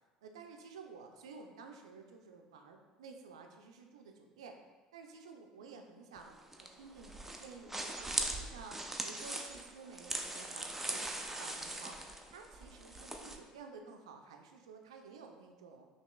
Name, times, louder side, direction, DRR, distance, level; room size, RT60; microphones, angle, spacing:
voice 1, 0.2-4.6 4.9-11.9 12.3-15.8, right 4 dB, 85° right, 4 dB, 0.4 m, -52 dB
sound 1, 6.2-13.4, right 1 dB, 10° right, 0.5 m, -41 dB
5.7 x 2.8 x 2.2 m, 1.3 s
hypercardioid pair, 70°, 3 cm